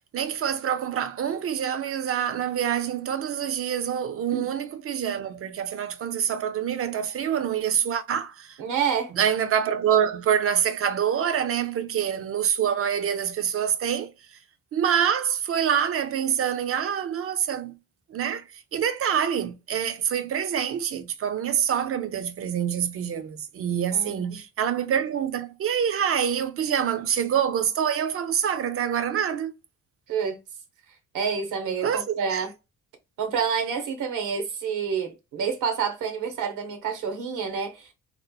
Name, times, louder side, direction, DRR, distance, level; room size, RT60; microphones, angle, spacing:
voice 1, 0.1-8.6 9.1-14.1 14.7-17.8 18.1-29.5 31.8-32.4, right 8 dB, 50° right, 0.5 m, -26 dB
voice 2, 8.6-9.1 23.9-24.2 30.1-30.4 31.1-32.5 33.2-37.9, right 6 dB, 80° right, 0.9 m, -28 dB
2.9 x 2.0 x 2.2 m
cardioid pair, 90°, 30 cm